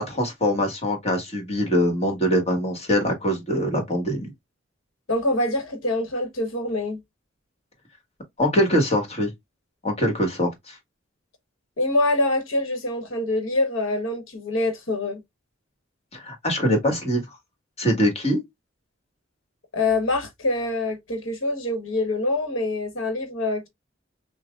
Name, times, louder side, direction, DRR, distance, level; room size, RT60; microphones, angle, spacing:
voice 1, 0.0-4.3 8.4-9.3 9.8-10.8 16.1-17.2 17.8-18.4, equal, 30° left, 1.5 m, -23 dB
voice 2, 5.1-7.0 11.8-15.2 19.7-23.7, left 2 dB, 70° left, 1.1 m, -25 dB
5.8 x 2.2 x 2.4 m
head